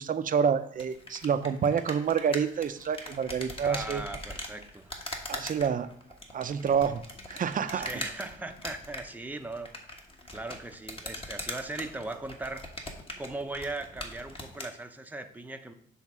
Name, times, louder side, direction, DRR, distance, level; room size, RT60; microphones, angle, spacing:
voice 1, 0.0-4.0 5.3-5.9 6.3-7.0 7.3-7.9, right 7 dB, 45° right, 10 dB, 0.6 m, -28 dB
sound 1, 0.7-14.7, left 1 dB, 25° left, 1.4 m, -41 dB
voice 2, 3.6-4.9 7.7-9.7 10.3-12.7 13.2-15.7, right 2 dB, 10° right, 5 dB, 0.7 m, -38 dB
7.3 x 3.6 x 6.0 m, 0.66 s
cardioid pair, 90°, 20 cm